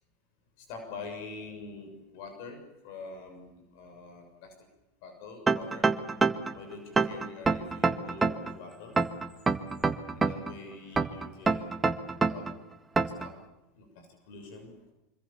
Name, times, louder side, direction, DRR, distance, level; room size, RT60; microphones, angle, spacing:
voice 1, 0.6-4.5 5.0-5.9 6.5-9.0 10.1-11.8 12.3-12.5 13.2-13.4 13.7-14.8, left 4 dB, 65° left, 5 dB, 6.8 m, -45 dB
sound 1, 5.5-6.5 7.0-8.5 9.0-10.5 11.0-12.5 13.0-13.3, right 4 dB, 15° right, 1.9 m, -25 dB
26.0 x 25.0 x 7.2 m, 1.0 s
hypercardioid pair, 110°, 0 cm